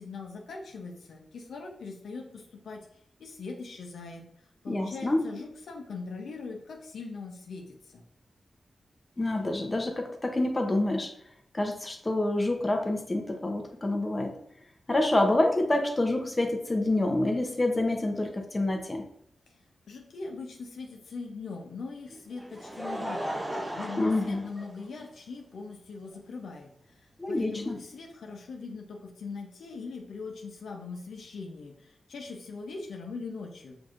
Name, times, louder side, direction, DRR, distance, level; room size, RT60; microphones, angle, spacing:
voice 1, 0.0-2.9 3.2-4.2 4.6-8.0 19.5-19.6 19.9-23.4 23.7-27.0 27.3-33.8, left 4 dB, 90° left, 1 dB, 0.6 m, -41 dB
voice 2, 4.7-5.2 9.2-11.1 11.5-14.3 14.9-19.0 24.0-24.4 27.2-27.7, left 2 dB, 25° left, 3 dB, 0.6 m, -27 dB
Laughter, 22.1-25.3 26.1-26.2 27.7-27.8, equal, 10° right, 0.7 m, -36 dB
5.8 x 2.6 x 2.4 m, 0.70 s
cardioid pair, 80°, 0 cm